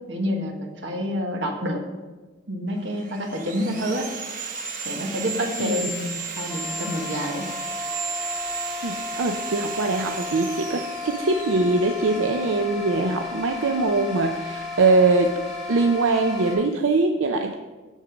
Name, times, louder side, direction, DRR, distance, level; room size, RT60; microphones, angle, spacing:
voice 1, 0.1-1.8 2.5-4.1 4.8-7.5, equal, 70° right, 1 dB, 1.5 m, -28 dB
Sawing, 2.8-12.6, right 4 dB, 45° right, 1.0 m, -34 dB
voice 2, 5.6-5.9 8.8-15.3 15.7-17.5, right 3 dB, 90° right, 4 dB, 0.6 m, -22 dB
sound 1, 6.5-16.5, left 4 dB, ahead, 3.0 m, -34 dB
7.3 x 7.3 x 5.1 m, 1.3 s
head